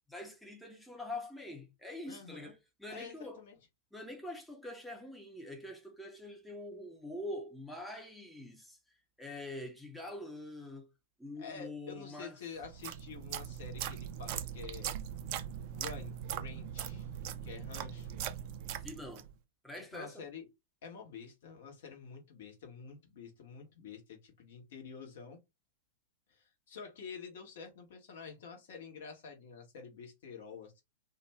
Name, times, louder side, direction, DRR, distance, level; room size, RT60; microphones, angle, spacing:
voice 1, 0.1-3.5 3.9-8.8 9.2-10.9 11.2-12.4 18.8-19.3 19.6-20.3, left 1 dB, ahead, 0.6 m, -45 dB
voice 2, 2.1-2.5 2.9-3.6 11.4-15.0 15.7-17.1 17.4-18.3 19.8-20.5 20.8-25.4 26.3-30.8, left 6 dB, 55° left, 1.0 m, -48 dB
sound 1, 12.6-19.3, right 10 dB, 45° right, 0.4 m, -40 dB
2.4 x 2.3 x 3.1 m
figure-of-eight pair, 100°, 0 cm